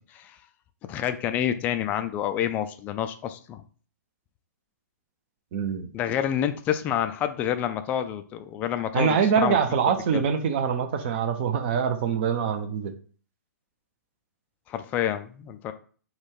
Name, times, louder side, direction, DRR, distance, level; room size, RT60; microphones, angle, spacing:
voice 1, 0.9-3.6 5.9-9.6 14.7-15.7, left 10 dB, 15° left, 9 dB, 0.3 m, -28 dB
voice 2, 5.5-5.9 8.9-12.9, right 7 dB, 35° right, 7 dB, 0.6 m, -24 dB
4.0 x 2.3 x 4.6 m, 0.42 s
figure-of-eight pair, 120°, 10 cm